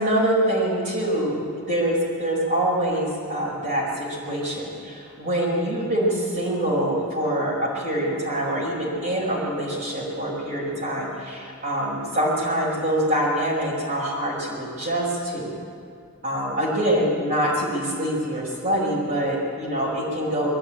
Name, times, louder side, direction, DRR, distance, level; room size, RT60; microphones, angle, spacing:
voice 1, 0.0-15.5 16.2-20.5, right 1 dB, 40° right, -7 dB, 4.9 m, -25 dB
22.5 x 13.5 x 8.8 m, 2.4 s
head